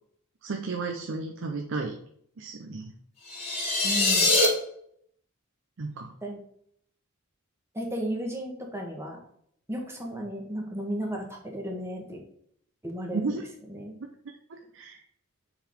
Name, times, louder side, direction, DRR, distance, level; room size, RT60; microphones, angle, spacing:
voice 1, 0.4-1.9 2.4-2.9 5.8-6.1 13.1-13.4 14.5-15.0, right 4 dB, 60° right, 3 dB, 0.6 m, -33 dB
sound 1, 3.3-4.5, left 2 dB, 30° left, 1.7 m, -23 dB
voice 2, 3.8-4.3 6.2-6.4 7.7-9.2 9.7-12.2 12.8-13.4 13.7-14.0, equal, 10° right, 0 dB, 1.3 m, -34 dB
7.1 x 3.9 x 3.6 m, 0.68 s
head